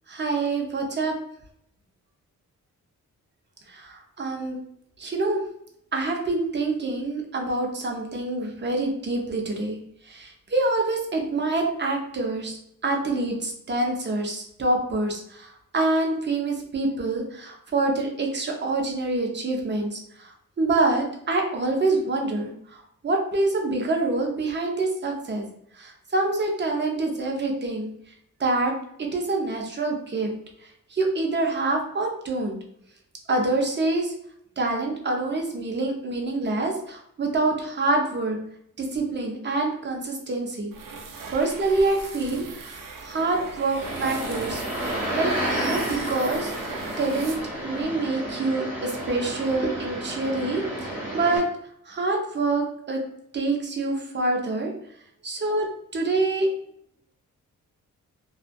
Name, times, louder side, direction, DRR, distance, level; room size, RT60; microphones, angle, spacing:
voice 1, 0.1-1.2 3.7-4.6 5.0-5.4 5.9-9.8 10.0-25.5 25.8-27.9 28.4-28.7 29.0-30.3 30.6-32.6 33.3-34.1 34.6-38.4 38.8-40.7 41.3-44.6 45.1-45.3 45.6-47.4 47.6-51.5 51.9-53.0 53.3-54.7 55.2-55.7 55.9-56.5, right 2 dB, 35° right, 1 dB, 0.6 m, -26 dB
sound 1, 40.7-47.8, right 4 dB, 75° right, 0.5 m, -39 dB
sound 2, 43.7-51.4, right 1 dB, 5° right, 1.3 m, -31 dB
2.5 x 2.3 x 2.2 m, 0.69 s
cardioid pair, 95°, 33 cm